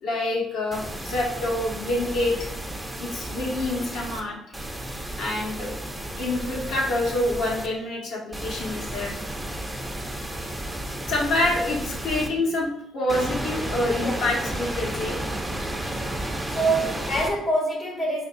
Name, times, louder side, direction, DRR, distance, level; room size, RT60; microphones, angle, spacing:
voice 1, 0.0-2.5 3.0-4.4 5.1-5.8 6.2-9.1 11.1-15.2 16.8-16.9, left 1 dB, 75° left, -3 dB, 1.4 m, -27 dB
sound 1, 0.7-4.2 4.5-7.7 8.3-12.3 13.1-17.3, right 1 dB, 5° right, 0.8 m, -32 dB
voice 2, 16.5-18.2, right 2 dB, 50° left, -2 dB, 1.1 m, -25 dB
5.0 x 2.9 x 2.6 m, 0.78 s
supercardioid pair, 70°, 0 cm